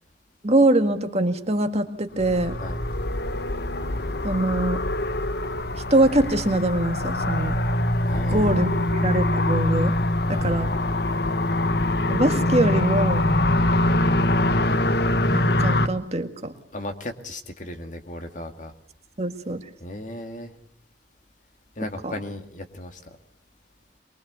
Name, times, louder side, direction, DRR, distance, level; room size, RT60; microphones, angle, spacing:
voice 1, 0.4-2.6 4.2-4.8 5.7-7.6 8.3-9.9 10.3-10.7 12.1-13.2 15.3-16.5 19.2-19.6 22.0-22.1, right 1 dB, 35° right, 6 dB, 1.9 m, -23 dB
sound 1, 2.2-15.9, left 1 dB, 60° left, 1.2 m, -23 dB
voice 2, 8.0-8.9 10.2-10.7 16.7-18.7 19.8-20.5 21.8-23.0, left 1 dB, 45° left, 6 dB, 2.3 m, -36 dB
23.5 x 23.0 x 8.2 m, 0.62 s
head